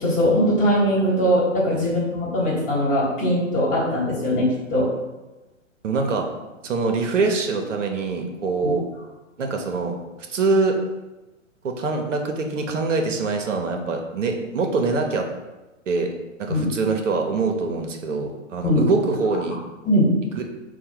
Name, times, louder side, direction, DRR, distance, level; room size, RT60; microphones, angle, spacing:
voice 1, 0.0-4.9 8.6-8.7 16.5-16.6 18.6-18.8 19.8-20.1, equal, 20° left, -5 dB, 1.3 m, -21 dB
voice 2, 5.8-6.3 6.6-8.8 9.4-10.0 10.3-10.8 11.6-15.3 15.9-16.1 16.4-19.6 20.3-20.4, right 3 dB, 70° right, 3 dB, 0.8 m, -24 dB
4.6 x 2.2 x 4.5 m, 1.1 s
figure-of-eight pair, 120°, 39 cm